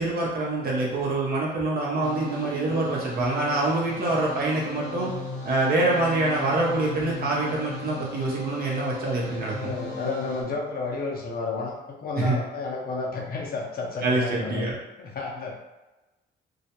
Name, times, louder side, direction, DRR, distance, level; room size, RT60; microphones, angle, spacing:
voice 1, 0.0-5.1 5.4-9.7 12.1-12.4 14.0-14.7, right 2 dB, 50° right, -4 dB, 0.6 m, -25 dB
sound 1, 2.0-10.4, left 2 dB, 85° left, 0.8 m, -37 dB
voice 2, 9.6-14.7 15.0-15.6, left 3 dB, 50° left, -1 dB, 0.7 m, -31 dB
2.3 x 2.1 x 2.8 m, 1.1 s
cardioid pair, 90°, 20 cm